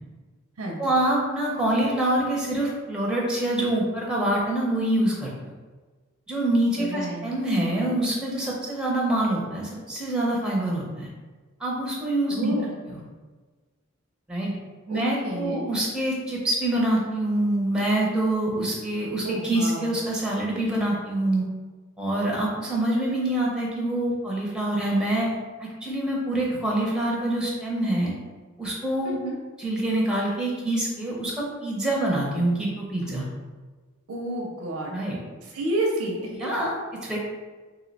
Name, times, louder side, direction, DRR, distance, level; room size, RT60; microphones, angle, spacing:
voice 1, 0.8-5.3 6.3-11.1 11.6-12.5 12.9-13.0 14.3-14.5 14.9-21.5 22.0-25.3 25.6-28.1 28.6-29.2 29.6-33.3 34.9-35.2 36.4-37.2, right 1 dB, 5° right, -3 dB, 0.5 m, -25 dB
voice 2, 6.8-7.2 12.3-12.8 14.9-15.7 19.2-20.0 29.0-29.4 34.1-34.9 35.4-36.5, right 1 dB, 85° right, -1 dB, 0.5 m, -30 dB
2.6 x 2.1 x 3.9 m, 1.3 s
head